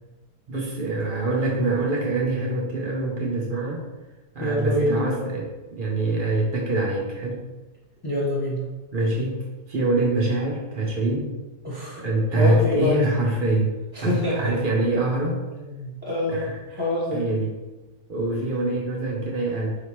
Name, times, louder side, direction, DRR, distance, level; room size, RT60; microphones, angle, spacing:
voice 1, 0.5-3.8 4.3-7.5 8.9-11.3 12.0-15.4 16.3-16.8 17.1-17.5 18.1-19.8, right 2 dB, 55° right, -3 dB, 0.6 m, -25 dB
voice 2, 4.4-4.9 8.0-8.6 11.6-12.0 12.4-13.0 13.9-14.4 15.8-16.5 16.8-17.2, left 1 dB, 15° left, -6 dB, 1.1 m, -25 dB
4.9 x 3.3 x 3.0 m, 1.1 s
omnidirectional pair, 1.8 m